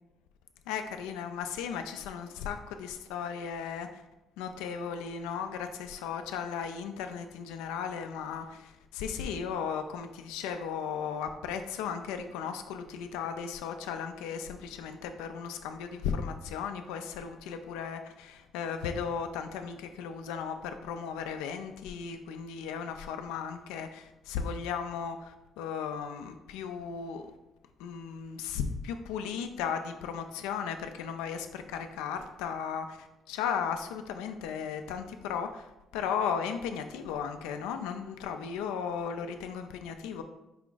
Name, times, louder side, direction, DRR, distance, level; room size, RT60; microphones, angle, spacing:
voice 1, 0.7-4.0 4.4-27.3 27.8-40.2, left 7 dB, 90° left, 7 dB, 0.3 m, -36 dB
4.9 x 2.4 x 3.8 m, 0.94 s
supercardioid pair, 60°, 0 cm